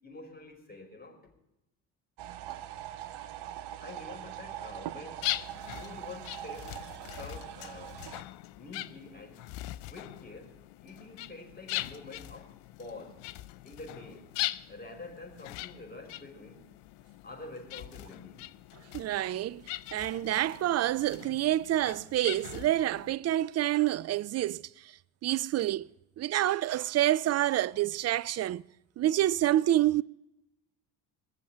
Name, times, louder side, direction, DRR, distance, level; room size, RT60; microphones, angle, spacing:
voice 1, 0.0-1.2 3.8-5.3 5.7-6.7 7.1-8.0 8.6-9.5 9.8-13.2 13.6-14.3 14.7-16.7 17.2-18.4, left 3 dB, 20° left, 5.1 m, -47 dB
sound 1, 2.2-8.2, right 12 dB, 65° right, 1.0 m, -42 dB
sound 2, 5.2-23.2, left 17 dB, 70° left, 0.7 m, -41 dB
voice 2, 18.9-19.6 19.9-24.6 25.2-25.9 26.2-28.6 29.0-30.0, right 13 dB, 35° right, 0.4 m, -27 dB
20.0 x 7.2 x 8.7 m
hypercardioid pair, 60°, 45 cm